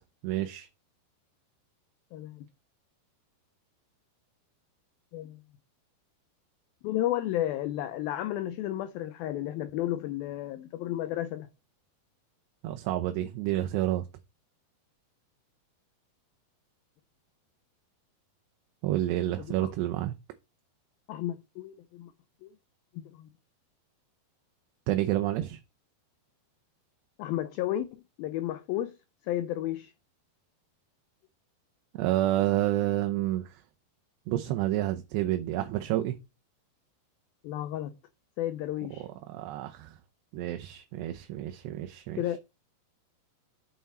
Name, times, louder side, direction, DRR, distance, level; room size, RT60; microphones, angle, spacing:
voice 1, 0.2-0.7 12.6-14.1 18.8-20.1 24.9-25.6 31.9-33.6 34.3-36.2 39.0-40.0 40.3-42.2, right 14 dB, 85° right, 2.9 m, -29 dB
voice 2, 2.1-2.5 5.1-5.4 6.8-11.5 19.6-19.7 21.1-22.1 22.4-22.5 23.0-23.3 27.2-29.0 29.3-29.9 37.4-37.9 38.4-39.1 42.2-42.4, left 13 dB, 85° left, 2.1 m, -32 dB
7.4 x 5.7 x 4.2 m
omnidirectional pair, 4.9 m